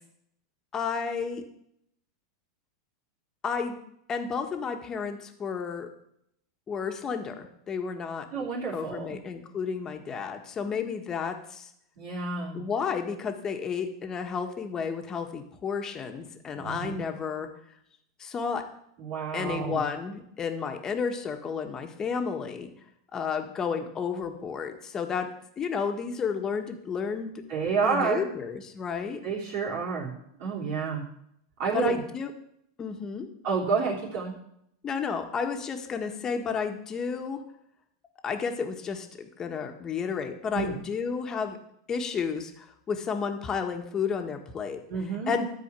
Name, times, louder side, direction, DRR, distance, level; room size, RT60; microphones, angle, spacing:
voice 1, 0.7-1.4 3.4-3.8 4.1-5.9 6.7-8.3 8.7-11.7 12.5-17.5 18.2-18.6 19.3-22.7 23.1-25.3 25.6-27.3 27.8-29.2 31.7-32.3 32.8-33.3 34.8-37.4 38.2-41.6 41.9-44.8 45.3-45.5, left 6 dB, 25° left, 5 dB, 1.6 m, -32 dB
voice 2, 8.3-9.2 12.0-12.6 16.5-17.0 19.0-19.8 27.5-28.3 29.2-30.1 30.4-31.0 31.6-32.0 33.4-34.3 40.5-40.7 44.9-45.3, right 5 dB, 55° right, -5 dB, 3.2 m, -29 dB
12.5 x 4.9 x 8.3 m, 0.75 s
hypercardioid pair, 120°, 2 cm